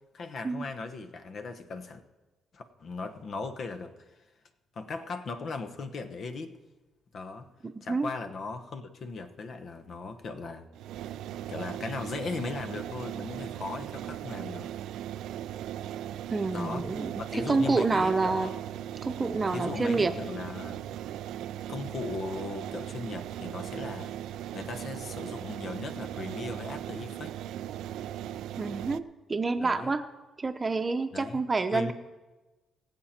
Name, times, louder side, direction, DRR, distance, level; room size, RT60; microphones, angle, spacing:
voice 1, 0.1-2.0 2.5-4.1 4.7-6.5 7.1-7.5 7.8-10.7 11.5-14.7 16.5-16.9 17.2-18.5 19.5-20.8 21.7-24.1 24.5-27.3 29.6-29.9 31.1-31.4 31.7-31.9, left 3 dB, 55° left, 7 dB, 1.1 m, -38 dB
voice 2, 7.8-8.1 16.3-18.5 19.0-20.1 28.6-30.0 30.4-31.9, right 3 dB, 30° right, 8 dB, 0.8 m, -28 dB
sound 1, 10.7-29.0, right 11 dB, 85° right, 0.4 m, -38 dB
22.5 x 7.6 x 4.4 m, 1.2 s
cardioid pair, 90°, 0 cm